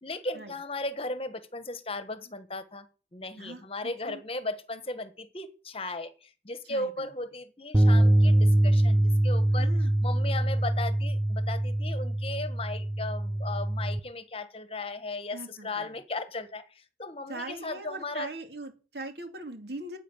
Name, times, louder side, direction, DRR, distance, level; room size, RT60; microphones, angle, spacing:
voice 1, 0.0-2.8 3.1-9.7 10.0-18.3, left 2 dB, 30° left, 11 dB, 1.3 m, -36 dB
voice 2, 6.7-7.1 9.6-9.9 15.3-15.9 17.3-20.0, right 2 dB, 65° right, 5 dB, 2.7 m, -40 dB
sound 1, 7.7-14.0, right 1 dB, 10° right, 0.6 m, -24 dB
10.5 x 8.7 x 9.8 m, 0.36 s
head